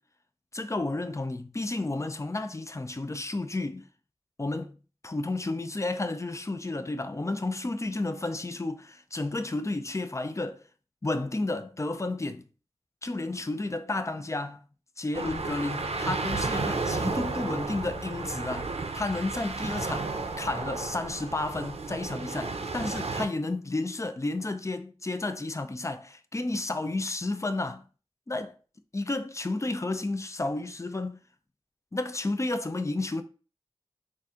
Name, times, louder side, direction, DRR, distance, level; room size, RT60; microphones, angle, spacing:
voice 1, 0.5-3.9 4.4-4.8 5.0-10.6 11.0-12.4 13.0-14.6 15.0-27.8 28.3-28.6 28.9-31.2 31.9-33.2, left 2 dB, 30° left, 0.4 m, -32 dB
sound 1, 15.1-23.3, right 3 dB, 85° right, 0.5 m, -33 dB
4.1 x 2.5 x 3.6 m
wide cardioid pair, 40°, 10 cm